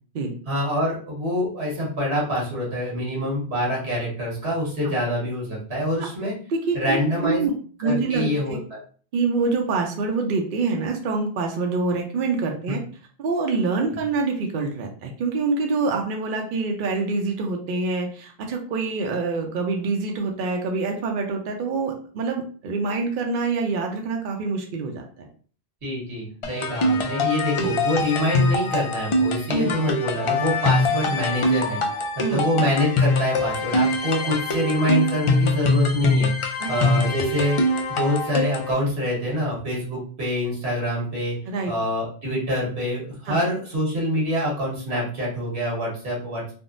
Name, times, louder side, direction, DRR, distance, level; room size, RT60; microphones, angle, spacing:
voice 1, 0.5-6.3 6.7-7.4 7.8-8.8 25.8-41.4 41.7-46.5, left 1 dB, 85° right, -4 dB, 1.6 m, -25 dB
voice 2, 6.5-7.5 7.8-8.6 9.1-12.8 13.2-25.3 27.6-27.7 29.5-29.8 32.2-32.5 36.6-36.7 37.0-37.1 41.5-41.7 43.3-43.4, right 4 dB, 60° right, 2 dB, 0.7 m, -26 dB
sound 1, 26.4-38.7, left 2 dB, 55° left, 0.3 m, -23 dB
3.5 x 2.0 x 2.4 m, 0.43 s
omnidirectional pair, 1.1 m